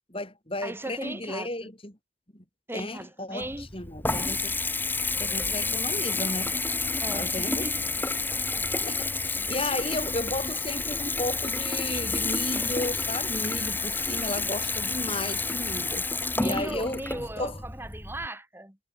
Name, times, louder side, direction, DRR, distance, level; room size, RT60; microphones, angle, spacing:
voice 1, 0.1-1.9 2.3-2.4 2.7-4.6 5.2-6.6 7.1-7.7 8.8-16.1 16.4-17.6, left 1 dB, 25° left, 4.9 m, -34 dB
voice 2, 0.6-1.7 2.7-3.7 7.0-7.8 16.4-18.8, right 1 dB, 10° right, 2.4 m, -37 dB
Water tap faucet / Bathtub (filling or washing) / Trickle dribble, 3.4-18.3, left 3 dB, 10° left, 2.1 m, -30 dB
head